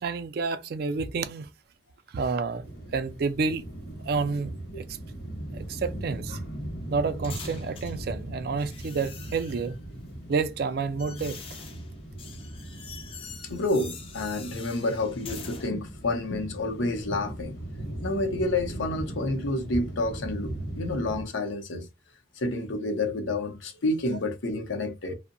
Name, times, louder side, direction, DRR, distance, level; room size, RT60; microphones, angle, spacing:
voice 1, 0.0-1.5 2.1-2.6 2.9-3.6 4.0-4.9 5.5-6.4 6.9-9.8 10.3-11.6, right 4 dB, 55° right, 0.3 m, -29 dB
sound 1, 2.6-21.2, right 1 dB, 55° left, 0.8 m, -39 dB
sound 2, 5.6-8.0 8.6-9.8 10.5-15.7, left 5 dB, 30° left, 0.3 m, -45 dB
voice 2, 13.5-17.6 18.0-21.9 22.4-25.1, left 2 dB, 80° left, 0.6 m, -29 dB
2.6 x 2.0 x 2.5 m
head